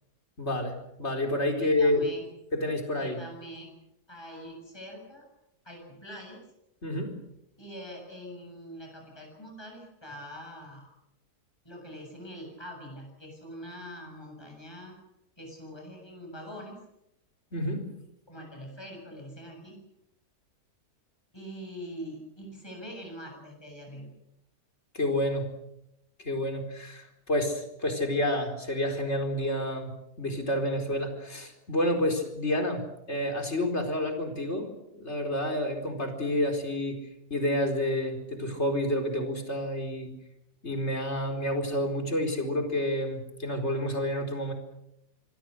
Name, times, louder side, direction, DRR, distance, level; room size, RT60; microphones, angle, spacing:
voice 1, 0.4-2.0 2.5-3.2 6.8-7.1 17.5-17.9 24.9-25.5 26.2-29.9 30.2-37.0 37.3-40.1 40.6-44.5, left 1 dB, 45° left, 4 dB, 4.8 m, -29 dB
voice 2, 1.6-2.3 3.0-3.7 4.1-5.3 5.6-6.4 7.6-10.9 11.6-14.9 15.4-16.7 18.3-19.8 21.3-24.2, equal, 15° left, 1 dB, 7.6 m, -43 dB
27.0 x 22.5 x 6.6 m, 0.83 s
omnidirectional pair, 1.7 m